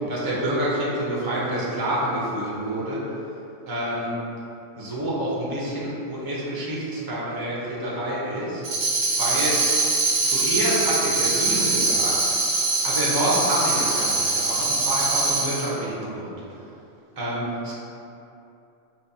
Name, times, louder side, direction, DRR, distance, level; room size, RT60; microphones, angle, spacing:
voice 1, 0.1-3.0 3.7-4.2 4.8-8.6 9.1-9.6 10.2-12.4 12.8-16.3 17.2-17.7, right 1 dB, 25° right, -6 dB, 0.6 m, -27 dB
Tambourine, 8.6-15.7, right 3 dB, 65° right, 0.9 m, -23 dB
5.5 x 2.6 x 2.7 m, 2.8 s
omnidirectional pair, 1.2 m